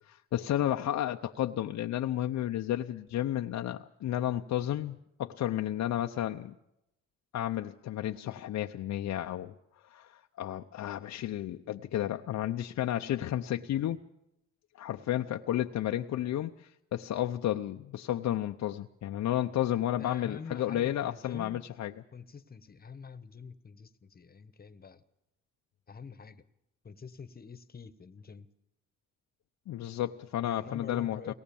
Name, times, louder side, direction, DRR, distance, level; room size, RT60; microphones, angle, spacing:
voice 1, 0.1-6.5 7.3-9.5 9.9-14.0 14.8-21.9 29.7-31.3, left 12 dB, 65° left, 5 dB, 0.7 m, -32 dB
voice 2, 20.0-21.6 22.1-25.0 25.9-26.4 26.8-28.5 30.4-31.3, left 5 dB, 30° left, 12 dB, 1.2 m, -46 dB
23.0 x 18.5 x 7.1 m, 0.86 s
cardioid pair, 90°, 30 cm